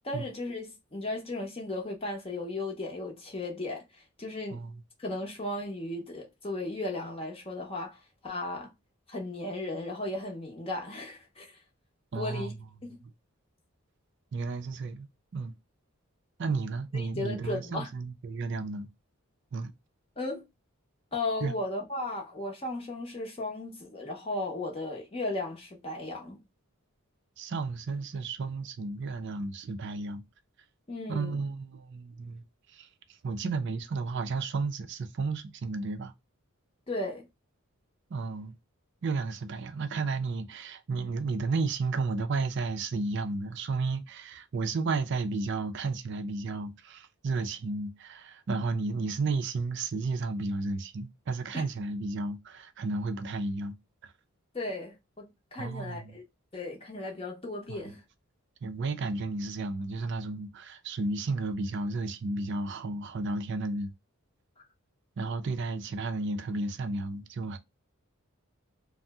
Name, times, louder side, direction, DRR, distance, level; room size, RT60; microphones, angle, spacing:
voice 1, 0.0-4.6 5.0-8.7 9.1-11.6 12.1-12.5 12.9-13.0 16.9-17.9 20.2-20.4 21.1-26.4 30.9-31.4 36.9-37.2 51.5-51.6 54.5-56.2 56.5-58.0, left 2 dB, 25° left, 0.6 m, -36 dB
voice 2, 12.1-12.5 14.3-15.1 15.3-15.5 16.4-18.9 19.5-19.7 21.4-21.5 27.4-30.2 31.1-32.4 32.7-32.9 33.2-36.1 38.1-38.6 39.0-53.7 54.0-54.1 55.6-56.1 57.7-57.8 58.6-63.9 65.2-67.6, right 3 dB, 55° right, 0.4 m, -32 dB
2.6 x 2.0 x 3.3 m
head